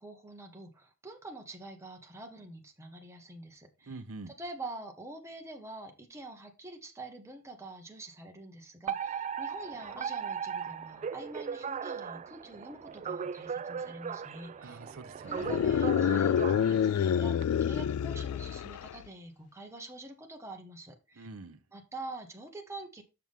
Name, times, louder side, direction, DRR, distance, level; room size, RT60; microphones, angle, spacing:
voice 1, 0.0-3.9 4.4-14.8 15.3-21.3 21.7-23.0, right 2 dB, 15° right, 1.4 m, -46 dB
voice 2, 3.9-4.3 14.6-15.7 21.2-21.6, right 3 dB, 80° right, 0.8 m, -45 dB
Alarm, 8.9-17.4, right 7 dB, 35° right, 0.3 m, -38 dB
sound 1, 15.4-19.0, left 8 dB, 85° left, 0.3 m, -28 dB
6.9 x 6.1 x 3.6 m
head